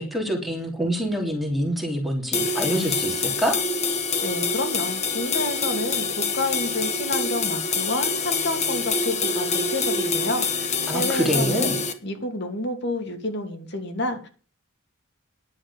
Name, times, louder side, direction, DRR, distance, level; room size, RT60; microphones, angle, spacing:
voice 1, 0.0-3.5 10.9-11.8, equal, ahead, 0 dB, 2.9 m, -26 dB
sound 1, 2.3-11.9, left 4 dB, 30° left, 1.5 m, -26 dB
voice 2, 4.2-11.7 12.0-14.3, left 2 dB, 55° left, 6 dB, 2.6 m, -29 dB
11.0 x 7.5 x 8.2 m, 0.36 s
head